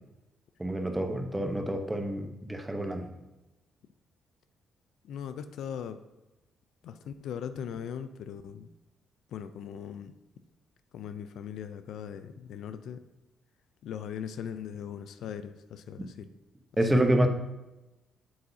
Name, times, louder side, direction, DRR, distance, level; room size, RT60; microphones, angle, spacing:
voice 1, 0.6-3.1 16.0-16.1 16.8-17.3, right 1 dB, 10° right, 5 dB, 0.9 m, -27 dB
voice 2, 5.1-5.9 6.9-7.0 7.2-8.6 9.3-10.1 10.9-13.0 13.8-16.0 17.0-17.3, left 8 dB, 75° left, 10 dB, 0.4 m, -39 dB
7.9 x 7.7 x 2.7 m, 1.0 s
cardioid pair, 90°, 0 cm